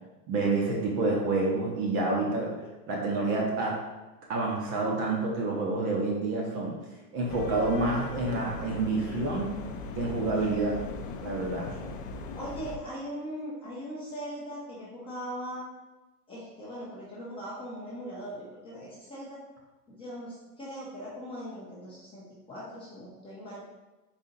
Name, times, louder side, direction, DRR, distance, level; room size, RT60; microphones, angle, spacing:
voice 1, 0.3-2.5 2.9-3.8 4.3-6.7 7.1-9.6 10.0-10.8 11.2-11.7, right 3 dB, 30° right, -2 dB, 0.6 m, -28 dB
sound 1, 7.3-12.8, left 4 dB, 55° left, 0.5 m, -39 dB
voice 2, 12.3-15.7 16.3-19.4 19.9-23.6, equal, 10° left, -7 dB, 0.6 m, -40 dB
4.1 x 2.7 x 3.8 m, 1.1 s
supercardioid pair, 145°, 48 cm